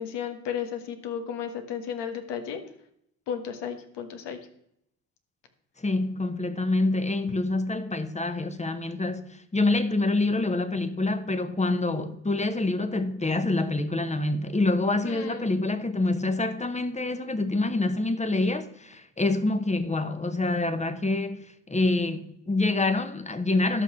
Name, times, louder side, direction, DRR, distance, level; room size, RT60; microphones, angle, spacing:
voice 1, 0.0-2.6 3.3-4.4 7.3-7.4 15.0-15.5, left 8 dB, 70° left, 1.6 m, -34 dB
voice 2, 5.8-23.8, left 2 dB, 15° left, 1.1 m, -26 dB
12.0 x 5.9 x 6.0 m
hypercardioid pair, 60°, 44 cm